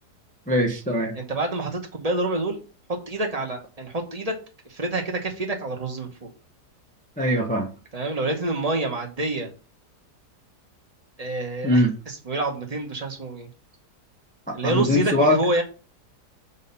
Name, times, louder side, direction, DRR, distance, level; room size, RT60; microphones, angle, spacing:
voice 1, 0.5-1.1 7.2-7.7 11.6-11.9 14.5-15.4, left 1 dB, 10° left, 1 dB, 0.6 m, -21 dB
voice 2, 1.1-2.6 2.9-4.3 4.6-6.3 7.9-9.5 11.2-13.5 14.5-15.6, right 2 dB, 25° right, 1 dB, 1.0 m, -27 dB
6.9 x 2.8 x 5.4 m, 0.34 s
omnidirectional pair, 1.8 m